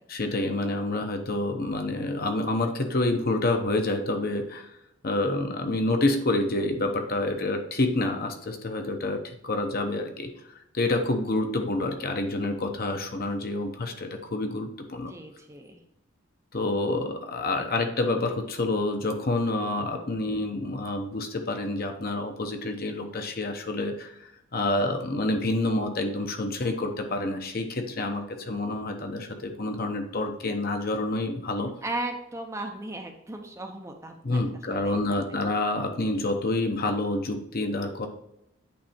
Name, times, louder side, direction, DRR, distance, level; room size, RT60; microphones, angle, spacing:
voice 1, 0.1-4.8 5.0-10.3 10.7-15.1 16.5-31.7 34.2-38.1, left 2 dB, 45° left, 5 dB, 0.9 m, -28 dB
voice 2, 15.1-15.8 19.9-20.1 31.8-34.4 34.8-35.0, right 2 dB, 15° right, 4 dB, 0.6 m, -36 dB
8.6 x 3.3 x 4.3 m, 0.81 s
head